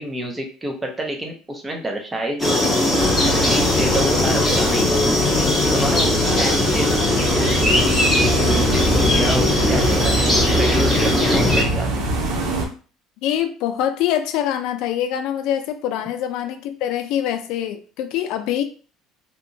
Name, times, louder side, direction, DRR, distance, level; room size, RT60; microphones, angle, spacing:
voice 1, 0.0-2.7 3.2-5.0 5.5-7.0 7.3-10.1 10.6-12.1, right 1 dB, 10° right, 2 dB, 0.5 m, -28 dB
sound 1, 2.4-11.6, left 2 dB, 5° left, 1.0 m, -19 dB
sound 2, 2.9-12.7, right 2 dB, 85° right, 0.7 m, -24 dB
voice 2, 13.2-18.6, left 10 dB, 65° left, 8 dB, 0.3 m, -24 dB
2.8 x 2.2 x 2.6 m, 0.38 s
cardioid pair, 155°, 0 cm